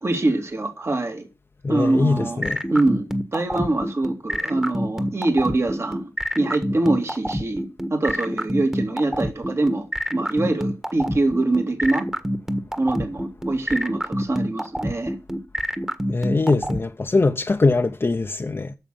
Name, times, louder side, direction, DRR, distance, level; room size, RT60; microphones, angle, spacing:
voice 1, 0.0-1.3 1.7-2.4 2.7-6.1 6.4-7.6 7.9-12.1 12.8-15.1, right 2 dB, 50° right, 2.3 m, -24 dB
voice 2, 1.6-2.6 16.1-18.7, left 3 dB, 45° left, 0.7 m, -22 dB
sound 1, 1.9-16.8, equal, 10° right, 1.4 m, -26 dB
9.0 x 6.6 x 7.5 m
wide cardioid pair, 70°, 6 cm